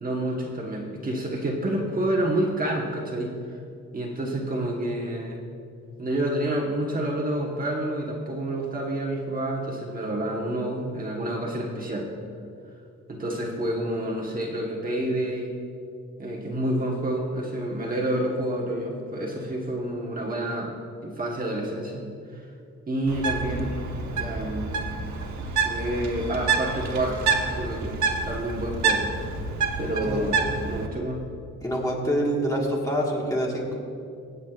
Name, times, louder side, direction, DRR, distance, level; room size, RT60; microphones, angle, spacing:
voice 1, 0.0-3.3 3.9-5.4 6.0-12.1 13.1-15.5 16.2-20.8 21.0-22.1 22.3-22.4 22.9-23.7 24.2-24.7 25.6-27.2 27.5-29.0 29.8-31.2, right 1 dB, 30° right, -2 dB, 1.2 m, -28 dB
Bird, 23.1-30.9, right 4 dB, 75° right, 1.1 m, -28 dB
voice 2, 31.6-33.8, equal, 10° left, -2 dB, 1.5 m, -26 dB
24.5 x 8.3 x 2.4 m, 2.5 s
wide cardioid pair, 175°, 29 cm